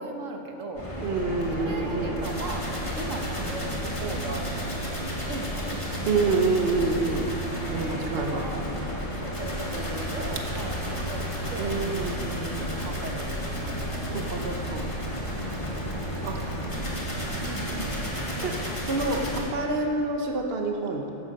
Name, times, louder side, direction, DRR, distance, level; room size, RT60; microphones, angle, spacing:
voice 1, 0.0-0.9 1.6-2.7 2.9-4.5 5.3-6.4 7.9-11.7 12.6-13.8 15.3-15.8 16.7-18.0, right 2 dB, 85° right, 2 dB, 1.7 m, -38 dB
sound 1, 0.7-19.4, equal, 25° left, 2.3 m, -32 dB
voice 2, 1.0-2.2 6.0-7.3 7.7-8.4 11.6-12.7 14.1-14.9 16.2-16.5 18.4-18.5 18.8-21.1, right 3 dB, 55° right, 2 dB, 1.3 m, -27 dB
15.0 x 12.0 x 5.4 m, 2.9 s
omnidirectional pair, 1.3 m